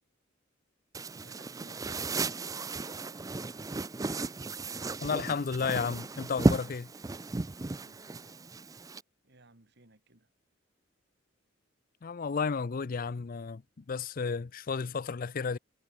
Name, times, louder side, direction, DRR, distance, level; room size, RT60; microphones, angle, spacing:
sound 1, 0.9-9.0, right 2 dB, 15° right, 0.4 m, -34 dB
voice 1, 1.1-2.1 2.7-3.6 7.8-8.8 9.2-10.3, right 2 dB, 60° right, 2.8 m, -60 dB
voice 2, 5.0-6.9 12.0-15.6, left 5 dB, 45° left, 0.5 m, -32 dB
head